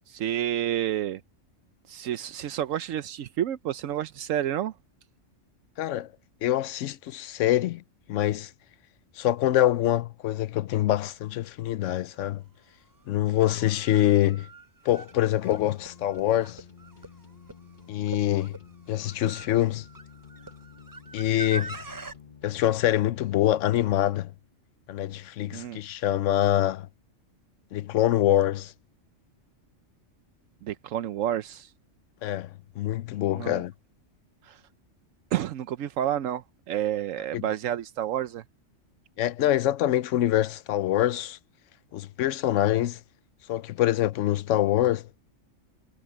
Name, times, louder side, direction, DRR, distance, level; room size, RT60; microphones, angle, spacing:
voice 1, 0.1-1.2 1.9-4.7 25.5-25.8 30.6-31.7 33.3-33.6 34.4-34.6 35.3-38.4, right 11 dB, 85° right, 1.1 m, -30 dB
voice 2, 5.8-6.1 6.4-7.8 8.1-8.5 9.2-12.4 13.1-14.5 14.8-16.6 17.9-18.6 18.9-19.9 21.1-21.8 22.4-24.3 24.9-26.9 27.7-28.7 32.2-33.7 37.3-37.4 39.2-41.4 41.9-43.0 43.5-45.1, left 13 dB, 75° left, 0.9 m, -25 dB
sound 1, 12.1-12.2 13.2-22.2, right 3 dB, 20° right, 0.7 m, -43 dB
sound 2, 15.1-24.0, left 7 dB, 40° left, 1.4 m, -51 dB
omnidirectional pair, 1.3 m